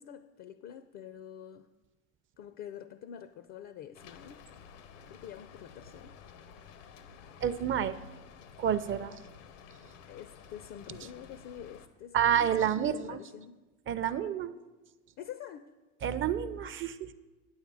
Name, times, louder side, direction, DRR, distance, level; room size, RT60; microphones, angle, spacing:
voice 1, 0.0-1.7 2.4-4.4 5.1-6.2 10.0-13.6 15.2-15.7, left 9 dB, 45° left, 0.5 m, -46 dB
Rain, 3.9-11.9, left 7 dB, 75° left, 0.8 m, -52 dB
voice 2, 7.4-8.0 8.6-9.2 12.1-13.2 13.9-14.5 16.0-17.1, right 9 dB, 35° right, 0.5 m, -29 dB
8.9 x 8.0 x 4.8 m
hypercardioid pair, 75°, 38 cm